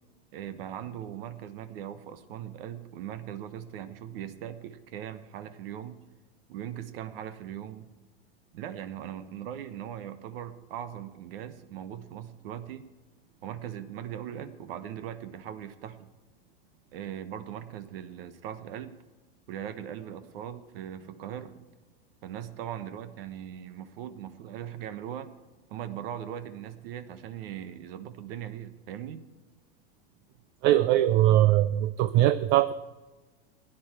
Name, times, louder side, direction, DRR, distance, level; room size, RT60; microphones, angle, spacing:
voice 1, 0.3-6.0 6.5-7.9 8.5-12.8 13.4-16.1 16.9-18.9 19.5-21.7 22.2-25.3 25.7-29.3, right 10 dB, 65° right, 11 dB, 1.2 m, -39 dB
voice 2, 30.6-32.7, right 13 dB, 35° right, 14 dB, 0.4 m, -21 dB
16.0 x 10.0 x 4.4 m, 1.2 s
supercardioid pair, 135°, 31 cm